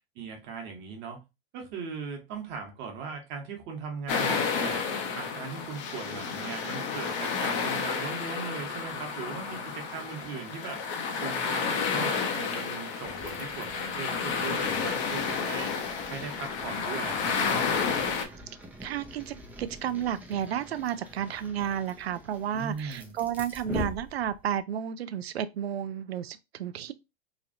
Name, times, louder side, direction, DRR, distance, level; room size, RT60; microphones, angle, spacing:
voice 1, 0.1-1.2 1.5-4.8 5.1-10.8 11.2-15.7 16.1-17.6 22.5-23.1, right 5 dB, 35° right, 1.1 m, -39 dB
sound 1, 4.1-18.3, left 5 dB, 40° left, 0.7 m, -31 dB
sound 2, 13.0-24.6, equal, 5° right, 0.5 m, -44 dB
voice 2, 18.8-26.9, right 9 dB, 80° right, 0.5 m, -32 dB
3.1 x 2.5 x 2.5 m
hypercardioid pair, 110°, 31 cm